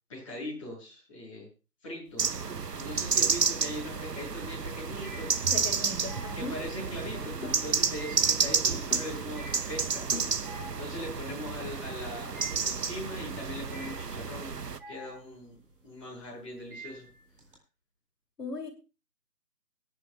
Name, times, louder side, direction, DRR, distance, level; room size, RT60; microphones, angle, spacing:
voice 1, 0.1-1.5 1.8-5.5 6.3-10.4 10.8-14.6 14.9-15.6 15.8-17.1, left 1 dB, 20° left, 7.6 m, -40 dB
sound 1, 2.1-2.7 3.1-17.5, right 2 dB, 30° right, 3.7 m, -49 dB
sound 2, 2.2-14.8, right 5 dB, 75° right, 0.9 m, -31 dB
voice 2, 5.5-6.6 18.4-18.7, left 3 dB, 75° left, 2.9 m, -37 dB
sound 3, 6.8-7.8 8.9-9.3 10.1-11.4, left 4 dB, 55° left, 2.3 m, -44 dB
25.0 x 10.0 x 2.3 m
figure-of-eight pair, 165°, 49 cm